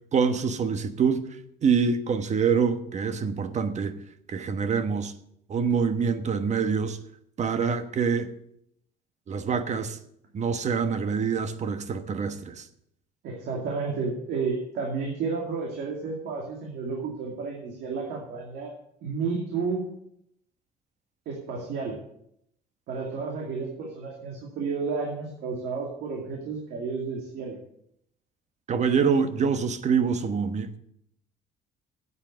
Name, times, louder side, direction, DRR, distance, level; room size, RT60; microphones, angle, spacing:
voice 1, 0.1-1.3 1.6-4.0 4.3-5.1 5.5-7.0 7.4-8.3 9.3-10.0 10.3-12.6 28.7-30.8, right 6 dB, 45° right, 1.2 m, -25 dB
voice 2, 13.2-18.7 19.0-19.9 21.3-22.0 22.9-27.6, right 4 dB, 80° right, 2.5 m, -31 dB
8.8 x 8.4 x 8.1 m
cardioid pair, 110°, 17 cm